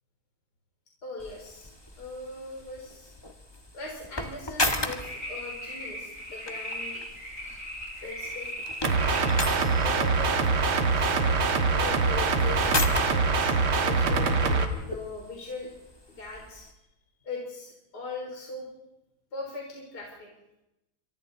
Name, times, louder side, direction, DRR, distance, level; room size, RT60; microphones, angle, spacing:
voice 1, 1.0-1.7 2.0-3.1 3.7-7.1 8.0-8.5 9.7-10.5 10.9-11.4 11.6-15.7 16.1-16.7 17.2-18.7 19.3-20.3, left 3 dB, 50° left, -1 dB, 4.4 m, -40 dB
sound 1, 1.2-16.7, left 1 dB, 15° left, 1.4 m, -37 dB
sound 2, 4.8-9.3 9.8-9.9, equal, 35° right, 7.8 m, -38 dB
sound 3, 8.8-14.6, right 4 dB, 85° right, 2.6 m, -24 dB
28.0 x 26.0 x 4.0 m, 0.94 s
omnidirectional pair, 2.3 m